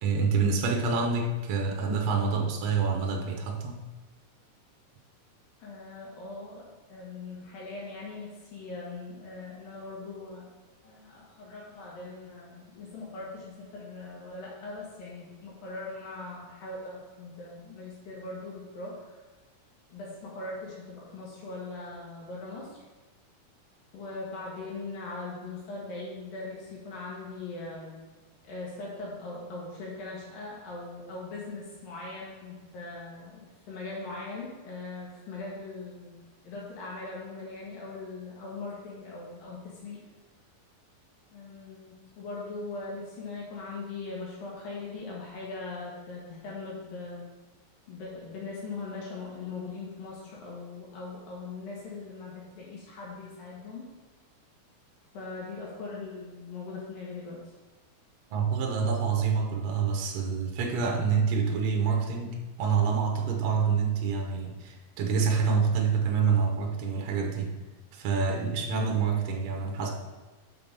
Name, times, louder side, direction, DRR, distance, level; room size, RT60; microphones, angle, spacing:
voice 1, 0.0-3.8 58.3-67.5 67.9-69.9, right 5 dB, 80° right, 2 dB, 1.5 m, -27 dB
voice 2, 5.6-10.4 10.8-19.2 19.9-22.8 23.9-28.0 28.4-36.2 36.4-40.0 41.3-47.3 47.9-53.9 55.1-57.5 68.8-69.0, left 3 dB, 75° left, -4 dB, 3.1 m, -40 dB
6.0 x 5.7 x 5.2 m, 1.2 s
omnidirectional pair, 4.1 m